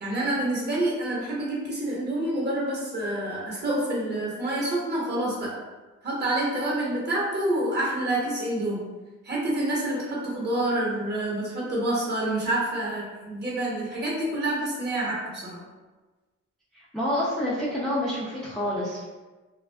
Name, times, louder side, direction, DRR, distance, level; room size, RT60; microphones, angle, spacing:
voice 1, 0.0-5.5 6.0-8.8 9.2-15.6, right 1 dB, 35° right, -5 dB, 1.0 m, -27 dB
voice 2, 16.7-19.1, left 1 dB, ahead, -8 dB, 0.4 m, -28 dB
2.4 x 2.3 x 2.2 m, 1.2 s
cardioid pair, 90°, 30 cm